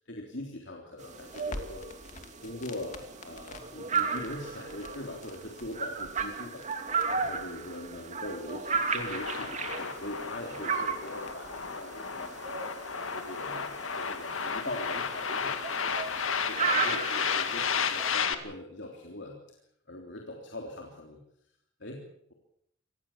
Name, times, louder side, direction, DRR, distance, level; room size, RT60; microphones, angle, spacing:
voice 1, 0.0-1.8 2.4-6.6 7.1-12.3 13.1-16.2 16.5-19.4 19.9-21.2 21.8-22.0, left 1 dB, 55° left, 1 dB, 3.5 m, -41 dB
sound 1, 1.0-18.1, right 5 dB, 35° right, 2.7 m, -35 dB
Crackle, 1.2-11.7, left 2 dB, 35° left, 2.6 m, -49 dB
sound 2, 9.0-18.3, left 6 dB, 75° left, 2.1 m, -33 dB
26.5 x 19.0 x 7.4 m, 0.71 s
head